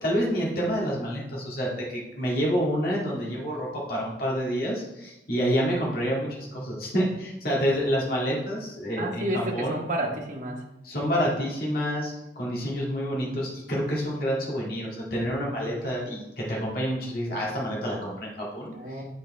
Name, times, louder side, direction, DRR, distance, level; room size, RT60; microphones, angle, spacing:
voice 1, 0.0-9.8 10.8-19.0, equal, 55° left, -5 dB, 1.9 m, -28 dB
voice 2, 9.0-10.6 18.8-19.0, right 1 dB, 45° right, 0 dB, 1.2 m, -30 dB
8.2 x 4.4 x 4.2 m, 0.91 s
head